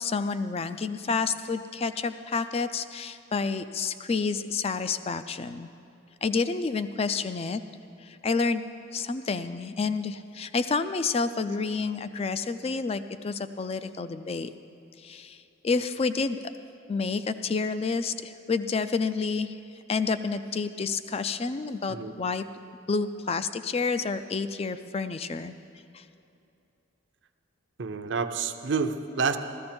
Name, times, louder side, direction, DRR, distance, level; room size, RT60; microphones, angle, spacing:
voice 1, 0.0-5.7 6.2-7.6 8.0-8.6 8.9-14.5 15.0-16.4 16.9-19.6 19.9-22.4 22.9-25.5 25.9-26.0, left 4 dB, 30° left, 12 dB, 0.3 m, -29 dB
voice 2, 27.8-29.4, right 5 dB, 60° right, 8 dB, 0.6 m, -28 dB
14.0 x 14.0 x 4.4 m, 2.7 s
head